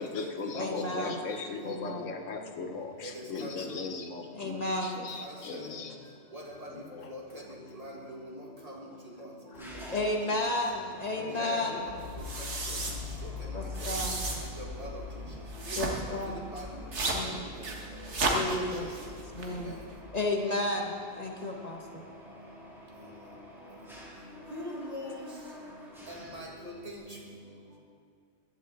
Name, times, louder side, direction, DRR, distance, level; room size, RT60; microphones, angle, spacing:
voice 1, 0.0-6.0 6.7-7.1 9.5-9.8 11.2-11.8 13.4-13.5 18.0-18.4, left 4 dB, 80° left, 4 dB, 1.3 m, -39 dB
voice 2, 0.5-1.2 1.6-2.1 4.3-5.0 9.9-11.9 13.5-14.2 15.8-16.5 17.1-17.4 18.3-18.9 19.3-19.8 20.1-22.0, left 1 dB, 35° left, 1 dB, 1.3 m, -32 dB
voice 3, 3.4-3.8 6.3-6.4 7.1-7.2 7.8-7.9 8.2-8.3 9.6-9.7 11.5-11.9 14.8-14.9 15.7-15.8 16.1-16.2 16.5-16.6 24.5-25.1 26.1-26.7, left 1 dB, 30° right, -2 dB, 2.0 m, -41 dB
Mechanisms, 9.5-27.0, equal, ahead, 2.3 m, -51 dB
sound 1, 11.9-20.0, right 1 dB, 65° right, 1.8 m, -35 dB
15.5 x 11.5 x 4.0 m, 2.2 s
omnidirectional pair, 1.3 m